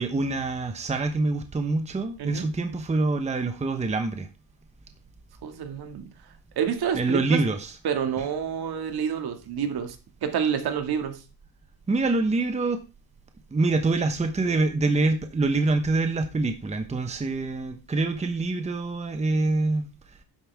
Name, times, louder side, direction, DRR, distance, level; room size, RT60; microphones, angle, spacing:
voice 1, 0.0-4.3 6.9-7.7 11.9-12.8 13.5-19.8, right 3 dB, 15° right, 1.1 m, -25 dB
voice 2, 5.4-6.1 6.6-7.4 7.8-10.0 10.2-11.2, right 8 dB, 55° right, 2.2 m, -28 dB
12.5 x 9.7 x 3.5 m
cardioid pair, 160°, 44 cm